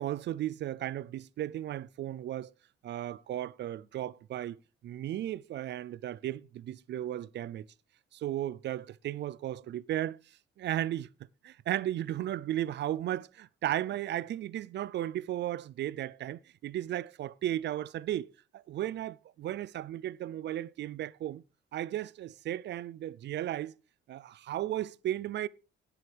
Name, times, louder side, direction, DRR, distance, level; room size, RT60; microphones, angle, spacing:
voice 1, 0.0-2.5 2.8-7.7 8.1-10.2 10.6-11.1 11.4-21.4 21.7-23.7 24.1-25.5, right 12 dB, 60° right, 0.4 m, -35 dB
17.0 x 7.9 x 3.4 m
cardioid pair, 90°, 20 cm